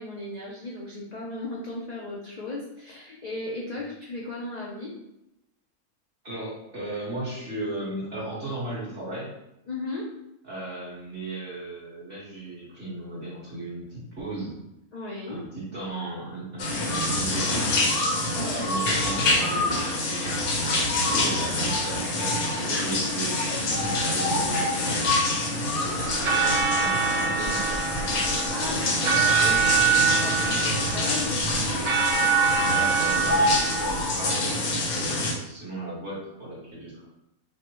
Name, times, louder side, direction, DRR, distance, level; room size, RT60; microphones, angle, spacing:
voice 1, 0.0-4.9 9.7-10.1 14.9-15.4 18.3-18.8 28.5-31.9, left 2 dB, 55° left, -4 dB, 0.4 m, -36 dB
voice 2, 6.2-9.3 10.4-14.6 15.3-17.7 18.3-20.7 21.0-25.2 25.7-26.5 26.8-27.9 29.9-30.1 32.7-37.0, right 2 dB, 40° right, -7 dB, 1.9 m, -36 dB
sound 1, 16.6-35.3, left 2 dB, 75° left, 1.2 m, -26 dB
sound 2, 26.0-34.0, right 6 dB, 55° right, 0.7 m, -25 dB
6.4 x 2.2 x 2.9 m, 0.86 s
omnidirectional pair, 1.5 m